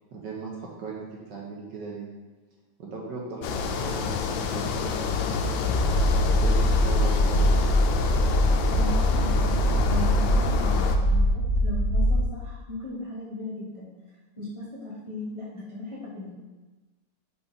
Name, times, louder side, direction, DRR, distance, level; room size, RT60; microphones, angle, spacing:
voice 1, 0.1-0.5 0.8-2.1 2.8-6.0 6.3-7.5, right 4 dB, 60° right, -3 dB, 1.4 m, -38 dB
sound 1, 3.4-11.0, left 5 dB, 75° left, 1.2 m, -28 dB
sound 2, 5.7-12.3, equal, 55° left, 0.7 m, -23 dB
voice 2, 8.8-13.9 14.4-16.3, left 2 dB, 20° left, -8 dB, 1.0 m, -37 dB
4.8 x 4.4 x 5.1 m, 1.2 s
omnidirectional pair, 2.4 m